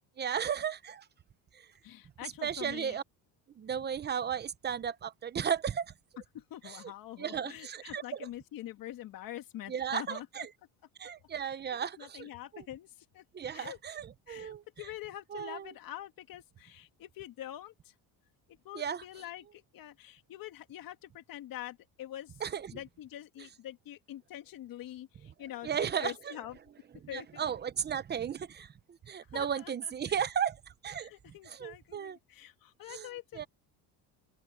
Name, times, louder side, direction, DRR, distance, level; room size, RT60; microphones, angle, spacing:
voice 1, 0.2-1.1 1.5-1.7 2.4-3.0 3.6-5.9 6.6-6.8 7.2-8.3 9.7-10.5 11.0-12.6 13.3-14.6 15.3-15.7 18.7-19.0 22.4-22.8 25.6-26.3 27.1-31.1 31.5-32.2 32.9-33.1 33.3-33.5, right 8 dB, 25° right, 0.8 m, -35 dB
voice 2, 1.8-3.0 6.3-10.3 11.5-11.6 12.0-13.2 13.5-13.8 14.3-17.9 18.5-22.4 22.7-26.6 27.1-27.4 29.2-30.1 31.0-33.4, left 13 dB, 55° left, 2.0 m, -45 dB
open air
cardioid pair, 150°, 41 cm